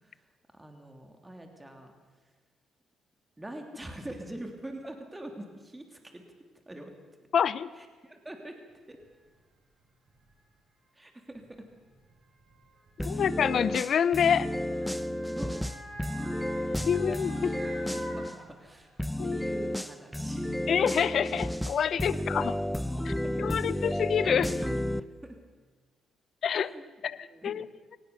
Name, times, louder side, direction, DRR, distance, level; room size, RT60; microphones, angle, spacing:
voice 1, 0.5-1.9 3.4-6.2 6.7-6.9 7.8-8.6 8.9-9.0 10.9-11.7 13.1-13.3 15.2-15.6 16.3-16.6 17.9-18.9 19.2-20.7 21.9-22.2 22.9-23.6 25.2-25.4 26.6-26.8 27.3-27.6, right 1 dB, 15° right, 4 dB, 3.0 m, -44 dB
voice 2, 7.3-7.7 13.0-14.5 16.9-17.5 19.2-19.4 20.7-22.5 23.1-23.2 23.4-24.6 26.4-26.7 27.0-27.7, left 8 dB, 60° left, 17 dB, 0.8 m, -27 dB
Motor vehicle (road) / Siren, 9.0-9.1 10.1-10.3 11.4-19.0 19.4-19.5, equal, 50° right, 7.0 m, -46 dB
sound 1, 13.0-18.3 19.0-25.0, left 1 dB, 5° left, 0.8 m, -32 dB
22.5 x 18.5 x 7.0 m, 1.4 s
cardioid pair, 90°, 0 cm